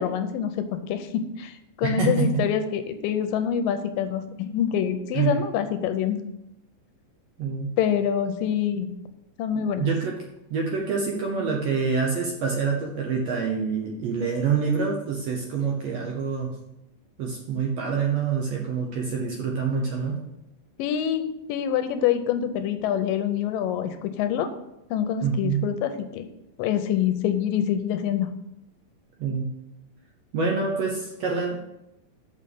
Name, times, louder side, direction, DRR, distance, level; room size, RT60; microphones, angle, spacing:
voice 1, 0.0-6.2 7.8-8.9 9.4-9.9 20.8-24.5 24.9-26.3 26.6-28.3, left 9 dB, 80° left, 9 dB, 2.2 m, -26 dB
voice 2, 1.8-2.4 5.1-5.4 7.4-7.7 9.5-10.2 10.5-16.5 17.2-20.2 25.2-25.7 29.2-29.5 30.3-31.7, right 5 dB, 65° right, 0 dB, 1.7 m, -26 dB
6.5 x 5.9 x 6.8 m, 0.89 s
omnidirectional pair, 4.0 m